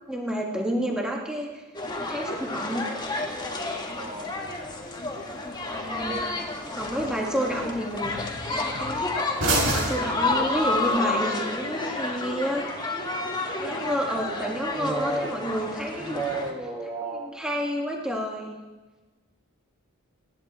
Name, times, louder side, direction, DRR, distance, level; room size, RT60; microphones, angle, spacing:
voice 1, 0.1-1.6 1.9-2.9 5.7-6.2 6.6-9.1 9.6-13.1 13.6-16.2 17.1-18.5, equal, 5° right, -1 dB, 1.8 m, -30 dB
sound 1, 1.7-16.5, left 2 dB, 20° left, 2.0 m, -30 dB
sound 2, 3.0-11.0, right 1 dB, 65° right, 6.3 m, -34 dB
voice 2, 3.9-4.4 5.6-6.3 14.2-15.4 15.9-17.3, right 2 dB, 20° right, 1 dB, 1.9 m, -33 dB
28.5 x 10.5 x 4.3 m, 1.2 s
head